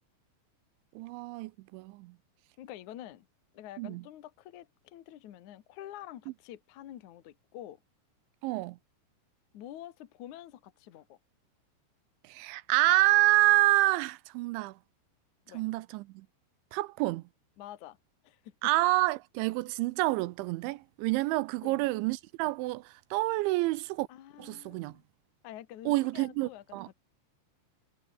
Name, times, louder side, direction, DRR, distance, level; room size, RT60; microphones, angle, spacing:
voice 1, 1.0-2.2 3.8-4.0 8.4-8.8 12.2-14.8 15.5-16.3 16.7-17.2 18.6-24.1 24.4-25.0 25.9-26.9, right 19 dB, 80° right, 2.8 m, -28 dB
voice 2, 2.6-3.3 3.5-7.8 9.5-11.2 15.5-15.6 17.6-18.0 18.2-18.5 21.6-21.9 24.1-25.0 25.4-26.9, left 12 dB, 70° left, 1.8 m, -47 dB
omnidirectional pair, 5.7 m